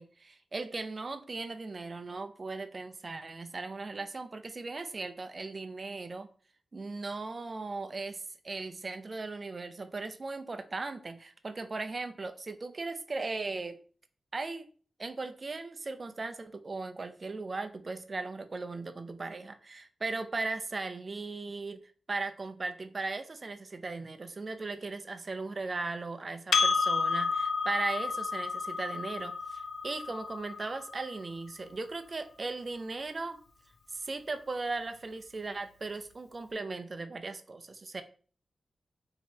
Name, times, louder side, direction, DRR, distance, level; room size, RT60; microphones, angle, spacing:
voice 1, 0.0-6.3 6.7-13.8 14.3-14.7 15.0-21.8 22.1-33.4 33.9-38.0, right 3 dB, 40° right, 8 dB, 0.4 m, -38 dB
Percussion, 26.5-31.3, left 5 dB, 90° left, 0.4 m, -31 dB
3.1 x 2.8 x 4.4 m, 0.42 s
wide cardioid pair, 95°, 0 cm